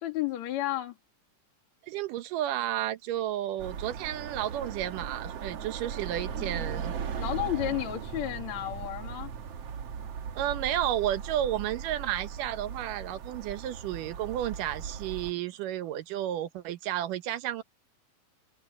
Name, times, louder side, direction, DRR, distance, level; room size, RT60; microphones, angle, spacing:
voice 1, 0.0-0.9 6.3-6.7 7.2-9.3, left 14 dB, 55° left, 3.2 m, -32 dB
voice 2, 1.9-6.9 10.4-17.6, right 12 dB, 75° right, 2.5 m, -32 dB
sound 1, 3.6-15.3, right 7 dB, 55° right, 2.3 m, -38 dB
omnidirectional pair, 4.0 m